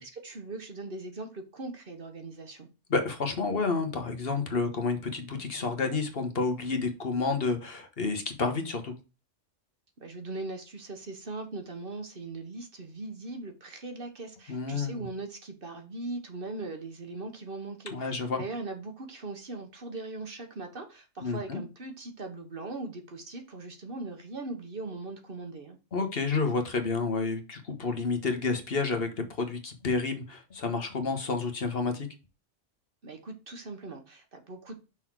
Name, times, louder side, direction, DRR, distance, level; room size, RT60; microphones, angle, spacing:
voice 1, 0.0-2.7 10.0-25.8 33.0-34.8, right 2 dB, 50° right, 1.3 m, -40 dB
voice 2, 2.9-8.9 14.5-15.1 17.9-18.4 21.2-21.6 25.9-32.1, left 4 dB, 55° left, 1.3 m, -30 dB
6.0 x 3.9 x 4.6 m
omnidirectional pair, 1.3 m